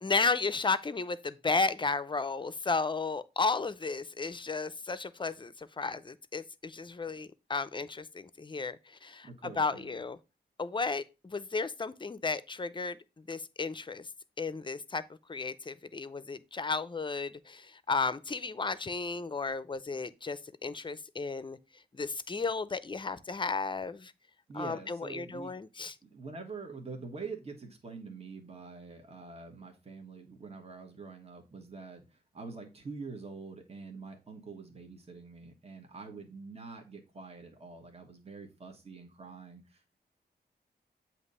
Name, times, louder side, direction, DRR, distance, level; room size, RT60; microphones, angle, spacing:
voice 1, 0.0-10.2 10.6-14.1 14.4-15.0 15.3-21.6 21.9-24.1 24.5-25.9, left 4 dB, 30° left, 0.5 m, -33 dB
voice 2, 9.2-10.0 24.5-25.5 26.1-39.9, right 4 dB, 35° right, 1.4 m, -45 dB
8.0 x 2.9 x 5.4 m
cardioid pair, 75°, 18 cm